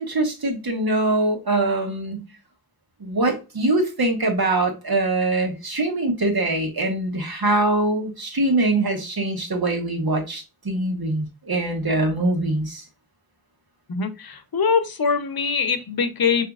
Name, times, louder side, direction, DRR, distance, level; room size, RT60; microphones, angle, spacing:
voice 1, 0.0-2.2 3.0-12.8, right 2 dB, 75° right, 1.2 m, -23 dB
voice 2, 13.9-16.5, left 5 dB, 70° left, 0.7 m, -23 dB
4.9 x 2.7 x 2.3 m
wide cardioid pair, 55°, 37 cm